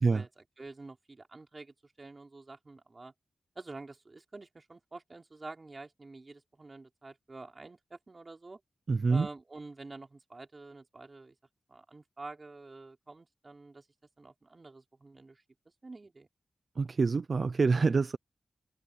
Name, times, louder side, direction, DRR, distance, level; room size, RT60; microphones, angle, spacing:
voice 1, 0.1-3.1 3.6-8.6 9.1-11.3 11.7-13.9 14.2-15.4 15.8-16.3, right 3 dB, 40° right, 3.9 m, -48 dB
voice 2, 8.9-9.3 16.8-18.2, right 4 dB, 55° right, 0.6 m, -26 dB
cardioid pair, 65°, 0 cm